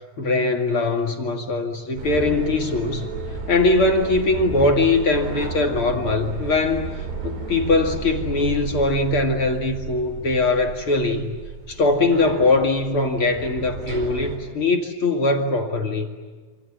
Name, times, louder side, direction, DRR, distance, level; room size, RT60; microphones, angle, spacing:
voice 1, 0.2-3.1 3.5-6.9 7.2-11.4 11.7-16.1, left 3 dB, 45° left, 3 dB, 2.0 m, -21 dB
sound 1, 2.0-14.4, right 4 dB, 85° right, 7.1 m, -33 dB
28.0 x 27.5 x 7.3 m, 1.4 s
omnidirectional pair, 5.4 m